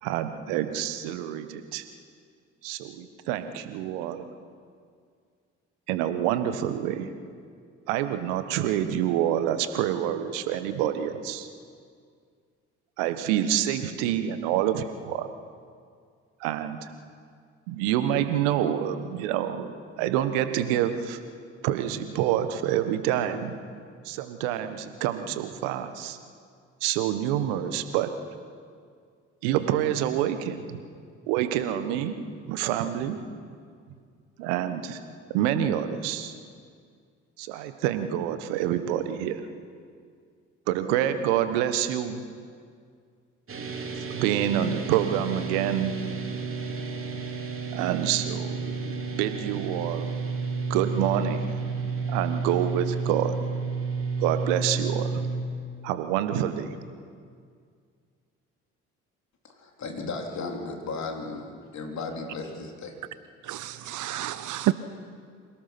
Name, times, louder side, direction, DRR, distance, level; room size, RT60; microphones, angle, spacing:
voice 1, 0.0-1.8 2.6-4.3 5.9-7.1 7.9-11.5 13.0-15.3 16.4-16.9 17.7-21.2 21.6-23.5 24.0-26.2 26.8-28.1 29.4-30.8 31.3-32.1 32.5-33.2 34.4-35.0 35.3-36.3 37.4-39.4 40.7-42.2 43.9-46.0 47.7-50.1 50.7-51.6 52.1-53.4 54.2-55.2 55.8-56.7, right 11 dB, 75° right, 10 dB, 1.4 m, -27 dB
sound 1, 43.5-55.4, right 4 dB, 35° right, 3.3 m, -31 dB
voice 2, 59.5-62.9, left 3 dB, 50° left, 2 dB, 3.7 m, -35 dB
voice 3, 63.4-64.7, right 15 dB, 55° right, 14 dB, 0.8 m, -29 dB
26.5 x 18.0 x 6.0 m, 2.1 s
hypercardioid pair, 50°, 37 cm